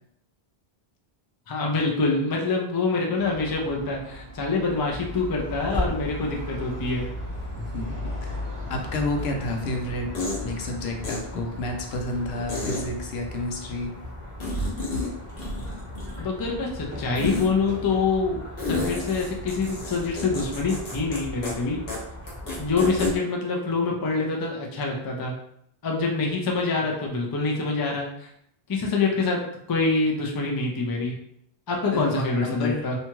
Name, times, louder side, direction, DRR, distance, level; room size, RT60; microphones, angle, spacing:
voice 1, 1.5-7.1 16.2-18.4 18.7-21.8 22.6-25.3 25.8-28.3 28.7-29.4 29.7-31.1 31.7-33.0, left 3 dB, 35° left, 0 dB, 0.3 m, -25 dB
sound 1, 3.2-12.3, left 1 dB, 55° right, 0.8 m, -38 dB
sound 2, 4.9-23.2, left 1 dB, 15° right, 0.7 m, -38 dB
voice 2, 7.6-8.4 8.7-10.1 10.4-13.9 31.9-32.9, left 1 dB, 80° left, 3 dB, 0.8 m, -30 dB
sound 3, 10.1-10.4 11.0-11.2 12.5-12.8 14.4-15.1 15.4-16.3 17.1-17.5 18.6-21.2 21.4-21.5 21.9-22.0 22.3-23.1, left 2 dB, 65° left, 1.1 m, -30 dB
2.7 x 2.3 x 2.9 m, 0.73 s
omnidirectional pair, 1.1 m